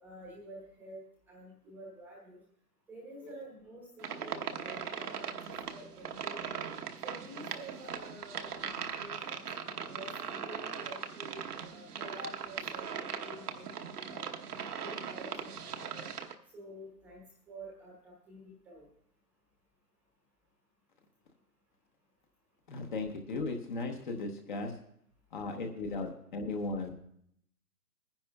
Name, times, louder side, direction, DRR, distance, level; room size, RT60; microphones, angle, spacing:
voice 1, 0.0-2.4 2.9-5.4 5.7-6.5 7.0-9.4 9.8-13.7 14.1-14.3 14.8-16.1 16.5-18.9, right 1 dB, 5° right, -3 dB, 0.9 m, -49 dB
sound 1, 4.0-16.3, right 7 dB, 70° right, 1.0 m, -40 dB
voice 2, 22.7-24.7 25.3-26.9, left 3 dB, 30° left, 4 dB, 1.0 m, -36 dB
21.5 x 10.0 x 2.3 m, 0.69 s
hypercardioid pair, 150°, 48 cm